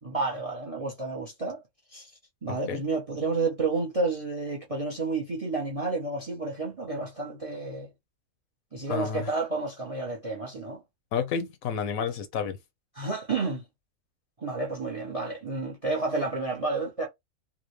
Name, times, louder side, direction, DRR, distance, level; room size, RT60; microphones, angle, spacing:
voice 1, 0.0-1.6 1.9-2.1 2.4-7.9 8.7-10.8 12.9-13.6 14.4-17.1, right 3 dB, 35° right, 0.5 m, -30 dB
voice 2, 2.5-2.8 8.9-9.3 11.1-12.6, left 7 dB, 70° left, 1.0 m, -30 dB
3.5 x 2.0 x 3.1 m
omnidirectional pair, 1.6 m